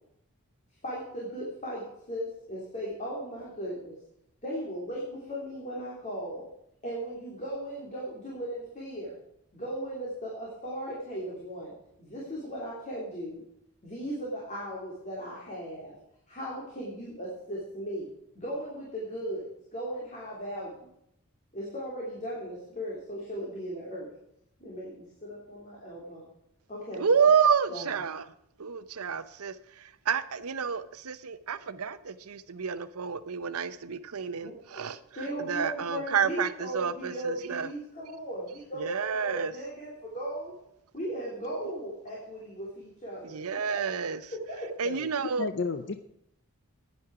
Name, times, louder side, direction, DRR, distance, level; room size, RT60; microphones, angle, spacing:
voice 1, 0.8-4.0 4.4-6.5 6.8-9.1 9.5-11.7 12.0-13.4 13.8-15.9 16.3-18.1 18.3-20.9 21.5-24.1 24.6-26.3 26.7-27.0 27.7-28.0 34.4-34.9 35.1-40.5 40.9-43.4 43.7-43.8 44.3-44.7, equal, 35° left, 3.3 m, -37 dB
voice 2, 27.0-28.3 28.6-37.7 38.8-39.5 43.2-44.2 44.8-45.5, right 6 dB, 80° right, 0.7 m, -29 dB
voice 3, 45.4-46.0, left 4 dB, 55° left, 0.6 m, -32 dB
10.5 x 10.0 x 4.8 m
head